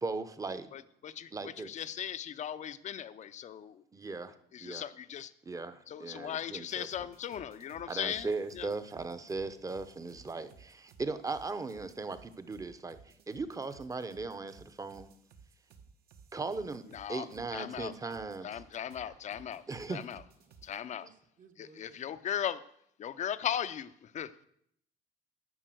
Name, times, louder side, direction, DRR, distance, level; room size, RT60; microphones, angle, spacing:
voice 1, 0.0-0.7 1.3-1.7 3.9-4.3 4.6-4.9 5.4-6.9 7.9-15.1 16.3-16.8 17.1-18.6 19.7-20.0, right 3 dB, 20° right, 11 dB, 0.8 m, -38 dB
voice 2, 0.7-3.8 4.5-5.3 5.9-8.3 8.5-8.7 16.9-17.3 17.5-17.9 18.4-20.2 20.6-21.1 21.6-22.6 23.0-24.3, left 9 dB, 45° left, 13 dB, 0.6 m, -38 dB
sound 1, 6.7-20.8, right 6 dB, 65° right, 1.5 m, -58 dB
voice 3, 21.0-22.1, right 5 dB, 50° right, 6 dB, 1.3 m, -59 dB
11.0 x 5.5 x 7.7 m, 0.70 s
cardioid pair, 110°, 17 cm